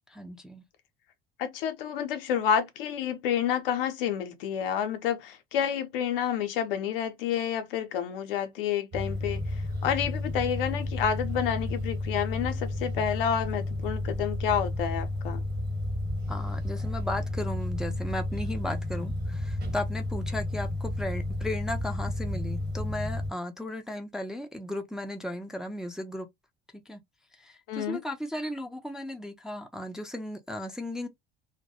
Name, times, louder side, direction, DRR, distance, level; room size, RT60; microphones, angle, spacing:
voice 1, 0.1-0.6 16.3-26.3 26.9-27.0 27.4-31.1, left 1 dB, ahead, 0.4 m, -35 dB
voice 2, 1.4-15.4 27.7-28.0, left 8 dB, 65° left, 0.6 m, -29 dB
sound 1, 8.9-23.3, left 1 dB, 35° right, 1.0 m, -32 dB
2.2 x 2.1 x 2.6 m
figure-of-eight pair, 60°, 30 cm